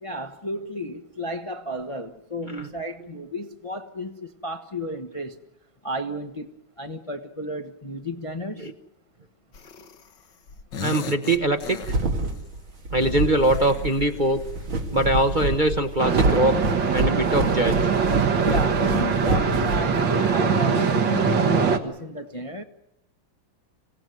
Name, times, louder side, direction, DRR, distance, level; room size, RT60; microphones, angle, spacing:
voice 1, 0.0-5.3 5.8-6.5 6.8-8.7 18.4-22.6, left 1 dB, 20° left, 0.9 m, -32 dB
sound 1, 9.5-10.2 10.5-12.5 13.5-15.0, left 7 dB, 65° left, 2.0 m, -39 dB
voice 2, 10.8-11.8 12.9-14.4 14.9-16.6 16.9-17.8, right 1 dB, 30° right, 1.0 m, -22 dB
sound 2, 11.4-20.4, right 2 dB, 90° right, 2.9 m, -27 dB
sound 3, 16.0-21.8, right 6 dB, 70° right, 2.2 m, -22 dB
25.5 x 17.0 x 9.4 m
omnidirectional pair, 2.1 m